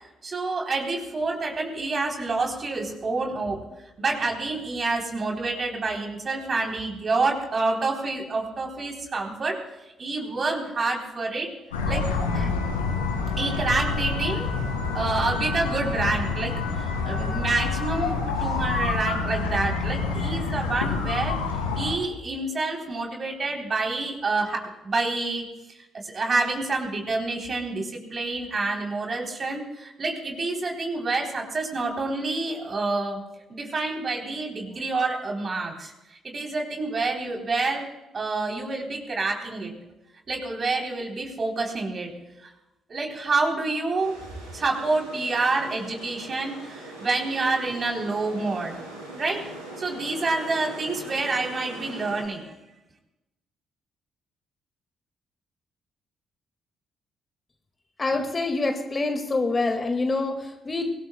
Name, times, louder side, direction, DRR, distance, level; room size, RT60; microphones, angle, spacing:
voice 1, 0.2-3.6 4.0-9.6 10.0-11.5 11.8-12.5 13.4-14.5 14.9-21.4 21.7-25.8 26.0-33.2 33.5-35.9 36.2-37.9 38.1-39.7 40.3-42.1 42.9-44.2 44.5-48.8 49.2-49.5 49.7-52.5, right 3 dB, 40° right, 1 dB, 3.5 m, -28 dB
sound 1, 11.7-21.9, left 4 dB, 85° left, 2.0 m, -27 dB
sound 2, 44.0-52.2, right 1 dB, 85° right, 3.4 m, -41 dB
voice 2, 58.0-60.9, left 3 dB, 30° left, 6 dB, 1.9 m, -26 dB
24.0 x 19.0 x 2.3 m, 0.99 s
figure-of-eight pair, 45°, 0 cm